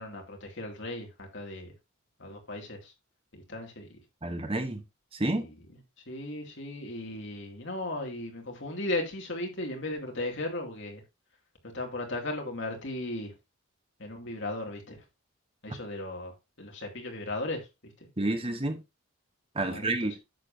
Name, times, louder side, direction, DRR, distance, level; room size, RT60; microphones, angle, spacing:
voice 1, 0.0-1.7 2.2-2.9 3.3-4.0 5.3-5.5 6.1-11.0 11.7-13.3 14.0-15.0 15.6-18.1 19.6-20.2, left 2 dB, 55° left, 2.5 m, -36 dB
voice 2, 4.2-4.8 5.1-5.5 18.2-18.8 19.5-20.1, right 2 dB, 25° right, 1.0 m, -29 dB
10.5 x 7.4 x 2.7 m
head